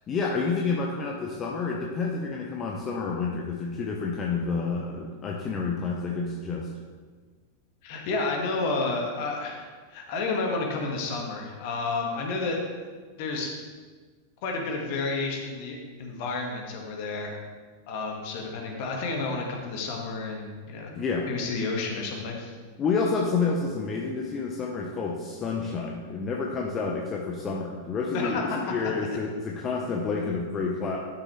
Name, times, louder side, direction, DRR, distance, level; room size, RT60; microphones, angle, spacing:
voice 1, 0.1-6.7 20.9-21.3 22.8-31.0, left 4 dB, 25° left, -1 dB, 0.9 m, -29 dB
voice 2, 7.8-12.6 13.2-13.5 14.4-17.3 17.9-20.9 21.3-22.5 28.1-28.6, left 3 dB, 50° left, 0 dB, 1.8 m, -31 dB
11.5 x 6.4 x 3.3 m, 1.5 s
figure-of-eight pair, 90°, 0 cm